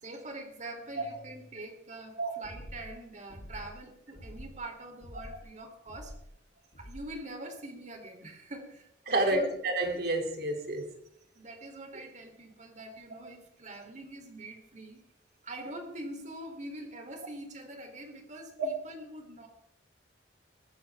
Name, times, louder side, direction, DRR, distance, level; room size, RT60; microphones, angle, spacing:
voice 1, 0.0-6.1 6.8-9.5 11.3-15.0 15.4-19.5, right 1 dB, 40° right, 3.6 m, -44 dB
sound 1, 2.4-2.9 3.3-3.8 4.1-4.6 5.0-5.5 5.9-6.3 6.7-7.1, equal, 65° left, 3.4 m, -46 dB
voice 2, 9.1-11.0 18.6-18.7, right 2 dB, 60° right, 3.2 m, -29 dB
22.5 x 15.5 x 3.7 m
head